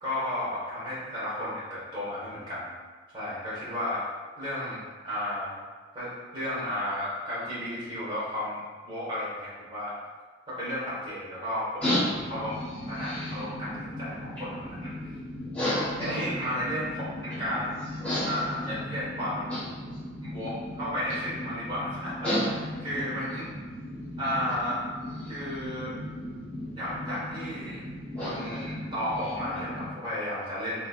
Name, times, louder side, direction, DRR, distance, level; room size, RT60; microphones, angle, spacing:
voice 1, 0.0-2.7 3.1-4.0 4.4-5.6 5.9-9.9 10.5-12.0 12.3-12.5 12.9-14.9 16.0-17.8 18.2-19.5 20.2-23.5 24.2-24.8 25.3-25.9 26.7-27.8 28.2-30.9, left 1 dB, 25° right, -9 dB, 1.4 m, -33 dB
sound 1, 11.8-29.9, left 1 dB, 5° left, 1.4 m, -34 dB
3.9 x 3.1 x 2.4 m, 1.4 s
head